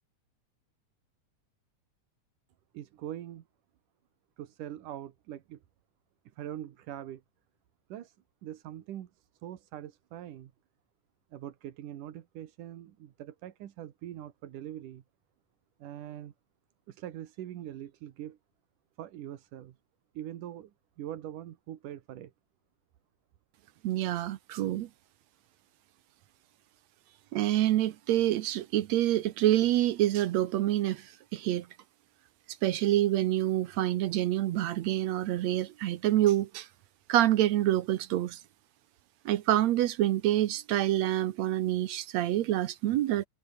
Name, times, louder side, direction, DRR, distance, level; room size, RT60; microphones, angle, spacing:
voice 1, 2.7-3.4 4.4-5.6 6.4-7.2 7.9-8.2 8.4-10.5 11.3-15.0 15.8-16.3 16.9-18.4 19.0-19.8 20.1-20.7 21.0-22.3 27.0-27.3, right 12 dB, 90° right, 3.0 m, -43 dB
voice 2, 23.8-24.9 27.3-31.7 32.6-36.7 37.1-38.4 39.3-43.3, right 13 dB, 70° right, 1.9 m, -27 dB
omnidirectional pair, 3.6 m